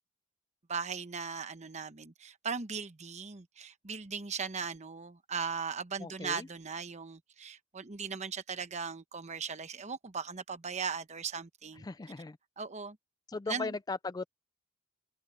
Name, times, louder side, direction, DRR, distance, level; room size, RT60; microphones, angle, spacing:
voice 1, 0.7-11.9 12.6-13.0 13.5-13.8, right 5 dB, 35° right, 1.0 m, -38 dB
voice 2, 6.0-6.5 11.8-12.4 13.3-14.3, left 3 dB, 20° left, 0.4 m, -38 dB
open air
head